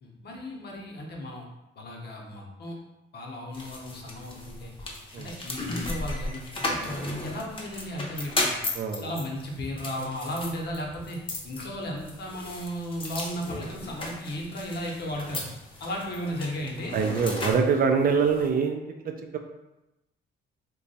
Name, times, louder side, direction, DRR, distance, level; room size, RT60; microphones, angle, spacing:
voice 1, 0.0-1.4 1.8-2.8 3.1-4.7 5.2-8.5 9.0-11.2 11.4-15.5 15.8-16.9, equal, 55° left, -1 dB, 0.8 m, -35 dB
sound 1, 3.5-18.5, left 2 dB, 25° left, 0.7 m, -36 dB
voice 2, 8.7-9.1 16.9-19.4, right 5 dB, 45° right, 4 dB, 0.4 m, -25 dB
2.9 x 2.2 x 4.0 m, 0.96 s
cardioid pair, 90°, 20 cm